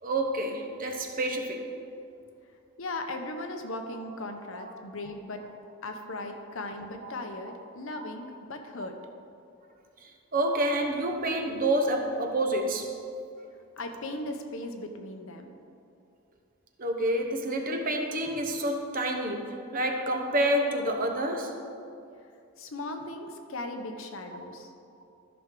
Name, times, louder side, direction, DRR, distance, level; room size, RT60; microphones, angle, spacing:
voice 1, 0.0-1.7 4.5-4.7 5.0-5.1 7.4-7.5 10.0-12.9 16.8-21.6, right 1 dB, 40° right, 3 dB, 0.8 m, -28 dB
voice 2, 2.8-5.4 5.8-8.9 13.8-15.5 22.6-24.7, left 2 dB, 60° left, 5 dB, 0.8 m, -37 dB
13.5 x 6.1 x 3.8 m, 2.5 s
head